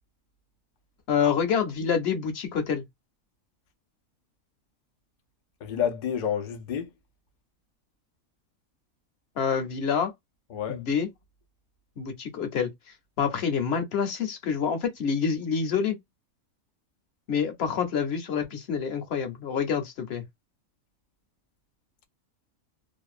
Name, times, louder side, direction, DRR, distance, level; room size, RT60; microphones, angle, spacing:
voice 1, 1.1-2.8 9.4-10.1 10.7-11.1 12.0-12.7 13.2-16.0 17.3-20.2, left 6 dB, 55° left, 0.8 m, -27 dB
voice 2, 5.6-6.9 10.5-10.8, left 8 dB, 75° left, 0.4 m, -29 dB
2.6 x 2.1 x 2.3 m
omnidirectional pair, 1.5 m